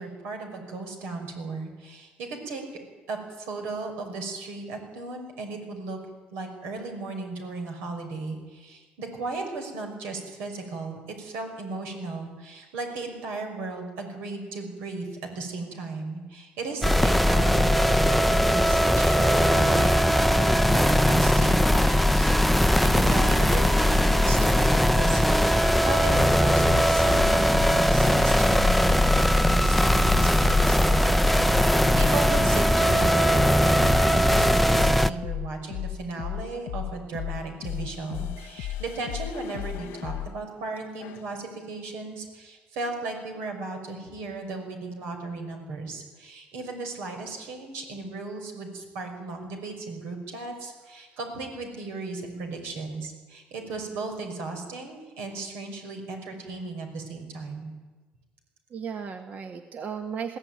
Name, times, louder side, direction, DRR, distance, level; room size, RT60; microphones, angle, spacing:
voice 1, 0.0-2.8 3.1-6.0 6.3-15.1 15.3-31.1 31.4-57.7, right 3 dB, 85° right, 3 dB, 5.8 m, -35 dB
sound 1, 16.8-35.1, equal, ahead, 0.6 m, -20 dB
sound 2, 24.0-25.0 25.6-40.3 41.0-41.4, left 12 dB, 85° left, 0.6 m, -35 dB
voice 2, 38.4-38.8 58.7-60.4, right 6 dB, 50° right, 6 dB, 1.4 m, -36 dB
21.5 x 16.0 x 9.4 m, 1.3 s
cardioid pair, 100°, 4 cm